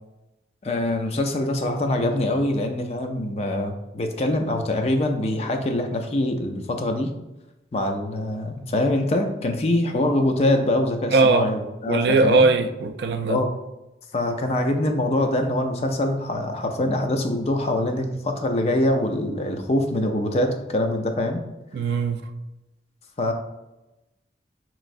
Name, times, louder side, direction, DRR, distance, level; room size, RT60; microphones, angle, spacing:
voice 1, 0.6-7.1 7.7-12.5 13.3-13.5 14.1-21.4 23.2-23.3, left 1 dB, 35° left, 0.4 m, -24 dB
voice 2, 11.1-11.5 11.9-13.4 21.7-22.2, right 3 dB, 65° right, 0.3 m, -19 dB
5.4 x 3.0 x 2.5 m
head